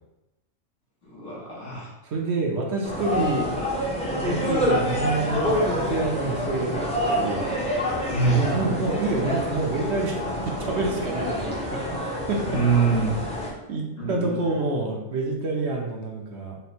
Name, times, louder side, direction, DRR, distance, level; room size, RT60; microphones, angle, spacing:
voice 1, 1.1-1.9 8.1-8.5 12.4-13.2 14.0-14.4, right 4 dB, 75° left, -7 dB, 1.8 m, -24 dB
voice 2, 2.0-3.5 4.2-7.5 8.3-12.0 12.3-12.6 13.7-16.6, right 3 dB, 65° right, 0 dB, 0.9 m, -28 dB
sound 1, 2.8-13.5, equal, 5° left, 0.6 m, -27 dB
4.3 x 2.1 x 4.2 m, 0.95 s
omnidirectional pair, 1.3 m